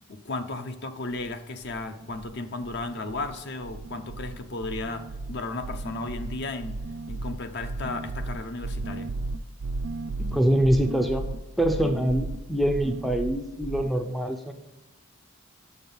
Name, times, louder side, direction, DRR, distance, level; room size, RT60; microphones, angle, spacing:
voice 1, 0.1-6.8 7.1-9.1, left 2 dB, 50° left, 9 dB, 0.6 m, -34 dB
sound 1, 1.2-1.3 1.6-2.4 2.6-3.4 3.6-13.9, right 2 dB, 70° right, 0.4 m, -35 dB
voice 2, 10.2-11.3 11.6-14.5, right 1 dB, ahead, 5 dB, 0.4 m, -24 dB
7.0 x 6.0 x 5.3 m, 1.0 s
head